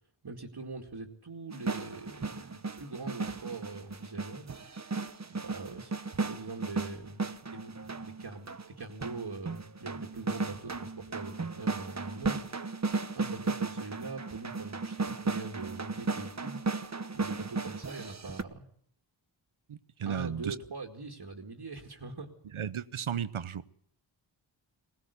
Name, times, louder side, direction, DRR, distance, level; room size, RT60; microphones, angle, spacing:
voice 1, 0.2-4.6 5.2-7.2 7.5-12.4 13.1-16.6 17.1-18.7 20.1-22.3, right 3 dB, 55° right, 2.2 m, -42 dB
sound 1, 1.5-18.4, right 3 dB, 35° right, 1.0 m, -35 dB
voice 2, 19.7-20.5 22.5-23.6, right 8 dB, 85° right, 0.9 m, -34 dB
21.0 x 19.0 x 8.2 m
wide cardioid pair, 80°, 48 cm